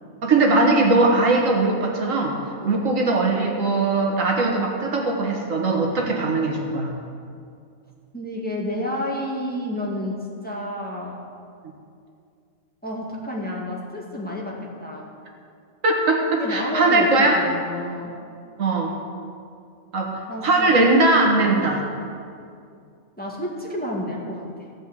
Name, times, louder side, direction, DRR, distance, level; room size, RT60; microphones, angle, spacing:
voice 1, 0.2-2.4 2.7-6.9 15.8-17.4 18.6-18.9 19.9-21.9, right 2 dB, 85° right, 0 dB, 2.0 m, -20 dB
voice 2, 8.1-11.2 12.8-15.1 16.4-18.2 20.3-20.7 23.2-24.5, left 1 dB, 5° left, -3 dB, 1.8 m, -30 dB
15.5 x 5.4 x 8.2 m, 2.4 s
omnidirectional pair, 1.3 m